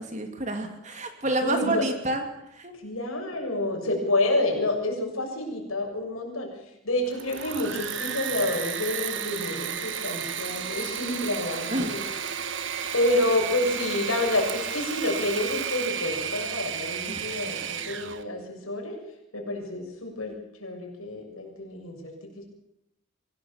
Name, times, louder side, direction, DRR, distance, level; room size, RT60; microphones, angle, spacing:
voice 1, 0.0-2.2 2.5-2.7 11.7-12.1 17.1-17.7, right 2 dB, 35° right, 5 dB, 2.7 m, -30 dB
voice 2, 1.2-1.8 2.7-12.0 12.9-19.0 19.3-22.4, left 2 dB, 85° left, 1 dB, 6.8 m, -29 dB
Engine / Mechanisms, 7.0-18.2, right 8 dB, 60° right, 1.5 m, -33 dB
24.5 x 16.5 x 7.3 m, 0.81 s
head